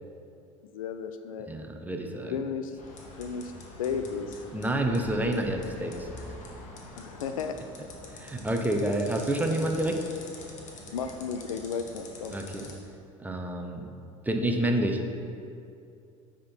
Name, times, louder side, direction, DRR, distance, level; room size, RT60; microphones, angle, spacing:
voice 1, 0.6-1.5 2.3-2.7 3.2-3.5 3.8-4.4 7.0-7.6 10.9-12.4, left 6 dB, 75° left, 8 dB, 0.4 m, -33 dB
voice 2, 1.5-2.4 4.5-6.1 8.2-10.0 12.3-12.7 13.2-13.9 14.3-15.0, right 1 dB, 10° right, 3 dB, 0.8 m, -28 dB
sound 1, 2.8-12.7, left 2 dB, 45° left, 1.3 m, -45 dB
9.3 x 3.7 x 4.4 m, 2.6 s
figure-of-eight pair, 70°, 18 cm